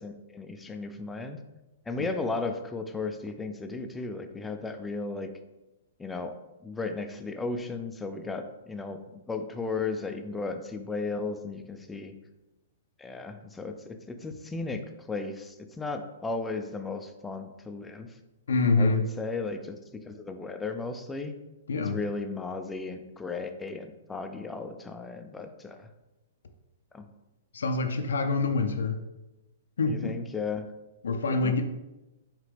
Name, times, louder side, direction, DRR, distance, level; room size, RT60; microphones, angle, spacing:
voice 1, 0.0-1.4 1.9-5.3 6.0-6.4 6.6-12.1 13.0-18.1 18.8-19.8 20.0-21.3 21.9-25.9 26.9-27.1 29.9-30.6 31.3-31.6, left 3 dB, 10° left, 7 dB, 0.4 m, -35 dB
voice 2, 18.5-19.1 21.7-22.0 27.5-29.0 29.8-30.1 31.0-31.6, left 3 dB, 75° left, 6 dB, 0.4 m, -26 dB
4.8 x 2.9 x 3.3 m, 1.0 s
hypercardioid pair, 120°, 0 cm